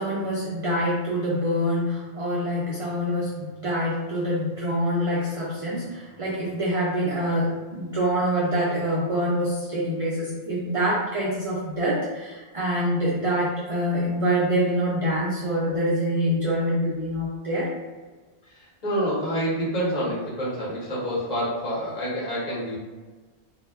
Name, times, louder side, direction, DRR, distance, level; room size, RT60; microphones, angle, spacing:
voice 1, 0.0-17.7, equal, 55° right, -6 dB, 0.3 m, -25 dB
voice 2, 18.5-22.8, equal, 40° left, -7 dB, 0.9 m, -27 dB
2.1 x 2.0 x 3.4 m, 1.3 s
omnidirectional pair, 1.1 m